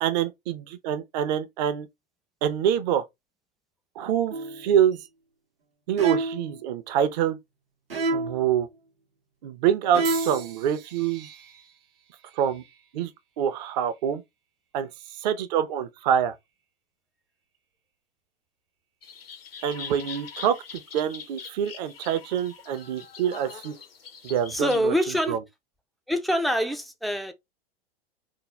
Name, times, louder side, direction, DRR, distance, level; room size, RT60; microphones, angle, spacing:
voice 1, 0.0-1.9 2.4-3.0 4.0-5.0 5.9-7.4 8.1-8.7 9.4-11.3 12.4-12.6 12.9-13.1 13.4-14.2 14.7-14.9 15.2-16.3 19.6-20.6 20.9-23.8 24.2-24.9 25.3-25.4, right 9 dB, 50° right, 0.7 m, -25 dB
sound 1, 4.3-4.7 6.0-6.6 7.9-8.5 9.9-10.5, right 2 dB, 80° right, 1.0 m, -28 dB
sound 2, 10.0-14.2 14.9-15.3 16.3-16.5, right 7 dB, 65° right, 1.2 m, -43 dB
sound 3, 19.0-24.8, left 6 dB, 75° left, 0.9 m, -43 dB
voice 2, 24.5-25.4 26.1-27.3, equal, ahead, 0.4 m, -25 dB
3.7 x 2.3 x 3.2 m
figure-of-eight pair, 90°, 29 cm